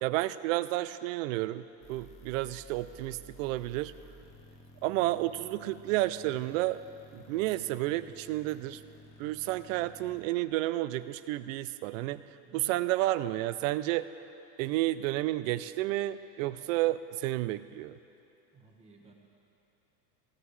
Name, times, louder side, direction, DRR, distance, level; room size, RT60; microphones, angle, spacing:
voice 1, 0.0-3.9 4.8-6.8 7.1-8.8 9.2-12.3 12.5-14.1 14.6-18.0, right 16 dB, 55° right, 14 dB, 0.5 m, -31 dB
sound 1, 1.8-10.2, left 1 dB, 15° left, 0.4 m, -54 dB
voice 2, 18.5-19.1, right 6 dB, 15° right, -2 dB, 1.3 m, -55 dB
19.5 x 16.5 x 3.2 m, 2.8 s
supercardioid pair, 180°, 48 cm